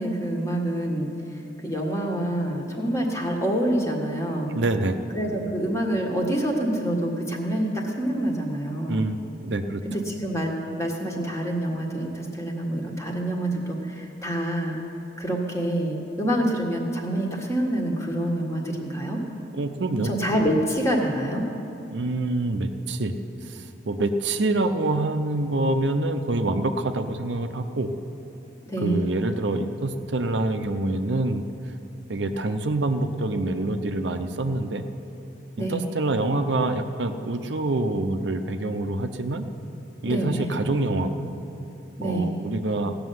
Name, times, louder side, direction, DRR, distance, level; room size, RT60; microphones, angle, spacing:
voice 1, 0.0-4.6 5.1-9.0 9.8-14.8 15.2-19.2 19.9-21.4 28.7-29.0 35.6-35.8 40.1-40.5 42.0-42.3, right 1 dB, 15° left, 0 dB, 1.6 m, -27 dB
voice 2, 4.5-5.0 8.9-9.2 9.4-9.8 19.5-20.1 21.9-23.1 23.9-27.9 28.8-31.4 32.1-34.8 35.6-39.4 40.0-41.3 42.0-43.0, right 2 dB, 70° right, 7 dB, 0.7 m, -26 dB
16.5 x 6.8 x 9.4 m, 3.0 s
head